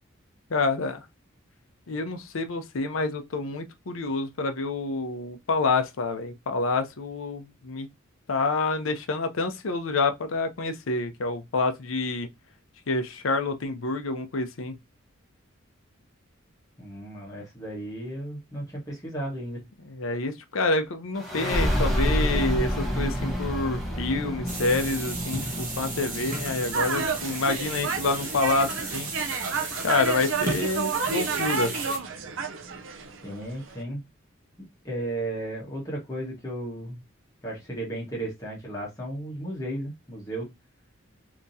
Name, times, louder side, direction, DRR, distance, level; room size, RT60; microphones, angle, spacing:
voice 1, 0.5-1.0 1.9-7.9 8.3-12.3 12.9-14.7 19.9-29.1 29.8-31.8, left 3 dB, 80° left, 0.6 m, -28 dB
voice 2, 16.8-19.6 33.2-34.0 34.8-37.0 37.4-40.5, right 1 dB, 15° left, 1.3 m, -34 dB
sound 1, 21.1-32.4, equal, ahead, 0.9 m, -31 dB
sound 2, 24.5-32.0, right 3 dB, 40° right, 1.0 m, -35 dB
sound 3, 26.7-33.8, right 5 dB, 70° right, 0.5 m, -31 dB
3.5 x 2.9 x 2.7 m
head